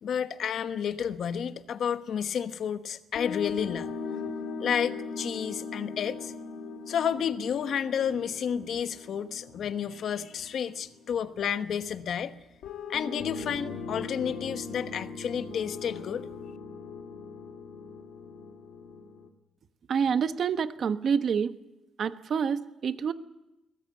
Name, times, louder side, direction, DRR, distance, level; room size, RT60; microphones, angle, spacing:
voice 1, 0.0-3.9 4.6-6.3 6.9-12.4 12.9-16.3, left 8 dB, 55° left, 10 dB, 1.1 m, -31 dB
sound 1, 3.1-11.3 12.6-19.3, left 5 dB, 90° left, 2.6 m, -39 dB
voice 2, 19.9-21.5 22.0-23.1, right 6 dB, 45° right, 10 dB, 1.1 m, -27 dB
22.0 x 19.0 x 8.4 m, 0.97 s
cardioid pair, 145°, 0 cm